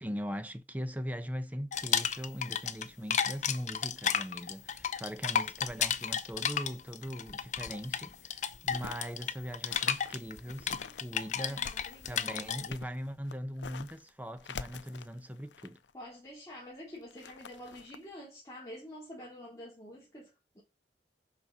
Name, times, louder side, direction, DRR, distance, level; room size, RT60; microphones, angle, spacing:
voice 1, 0.0-11.8 12.0-15.8, equal, 10° right, 1.0 m, -40 dB
sound 1, 1.7-2.9 3.1-12.7, left 8 dB, 45° left, 0.7 m, -33 dB
sound 2, 8.0-9.2 9.7-11.0 11.4-14.1 14.4-15.9 17.0-18.0, left 5 dB, 90° left, 0.6 m, -46 dB
voice 2, 10.8-12.7 15.9-20.6, left 1 dB, 20° left, 3.1 m, -48 dB
6.9 x 6.0 x 7.3 m
head